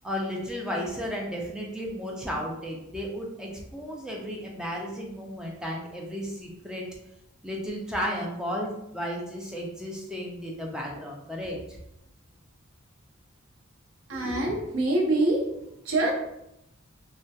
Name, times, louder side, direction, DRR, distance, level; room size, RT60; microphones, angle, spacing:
voice 1, 0.0-6.8 7.4-11.8, equal, 5° right, -2 dB, 0.3 m, -34 dB
voice 2, 14.1-15.4 15.9-16.1, right 2 dB, 80° right, 0 dB, 0.6 m, -24 dB
2.6 x 2.1 x 2.3 m, 0.83 s
head